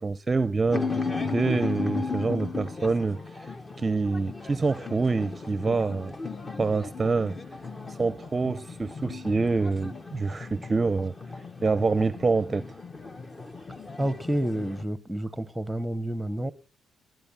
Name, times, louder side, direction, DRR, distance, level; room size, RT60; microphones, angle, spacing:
voice 1, 0.0-3.5 3.8-6.1 6.6-7.4 7.9-11.1 11.6-12.7, right 3 dB, 30° right, 0.7 m, -26 dB
sound 1, 0.7-14.8, left 4 dB, 25° left, 1.5 m, -36 dB
voice 2, 14.0-16.5, right 1 dB, 5° right, 1.1 m, -29 dB
20.5 x 9.4 x 7.3 m
cardioid pair, 90°, 0 cm